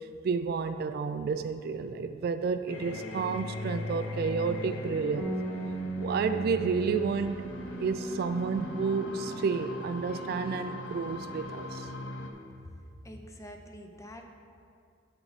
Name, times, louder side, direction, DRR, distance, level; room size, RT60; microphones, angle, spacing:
voice 1, 0.0-5.3 6.0-7.4 7.8-11.9, right 5 dB, 55° right, 10 dB, 0.3 m, -31 dB
sound 1, 2.7-12.3, left 2 dB, 85° left, 0.8 m, -39 dB
Bass guitar, 5.2-11.4, right 3 dB, 5° right, 1.0 m, -40 dB
sound 2, 6.9-11.9, left 1 dB, 50° left, 2.0 m, -55 dB
voice 2, 12.6-14.3, equal, 15° left, 4 dB, 0.6 m, -46 dB
13.0 x 4.6 x 4.1 m, 2.4 s
head